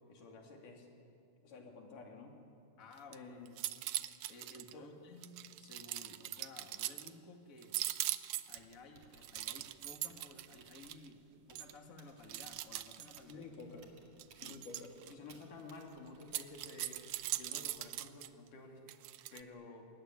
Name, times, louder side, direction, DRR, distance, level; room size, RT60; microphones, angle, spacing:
voice 1, 0.1-0.9 1.4-2.4 3.1-3.6 4.7-4.9 13.3-13.9 14.4-17.0 17.3-18.8 19.3-19.9, left 3 dB, 85° left, 2 dB, 4.3 m, -51 dB
voice 2, 2.8-3.2 4.3-5.3 5.6-7.7 8.5-13.5 14.4-14.6, left 2 dB, 30° left, 3 dB, 2.2 m, -55 dB
sound 1, 2.9-3.2 3.5-4.7 5.2-7.1 7.6-8.7 9.2-11.1 11.6-11.7 12.3-13.3 14.2-15.1 16.2-18.3 18.9-19.4, right 15 dB, 80° right, 2.3 m, -41 dB
Typing, 8.4-18.0, right 4 dB, 60° right, 3.4 m, -65 dB
24.5 x 20.5 x 9.8 m, 2.4 s
omnidirectional pair, 3.6 m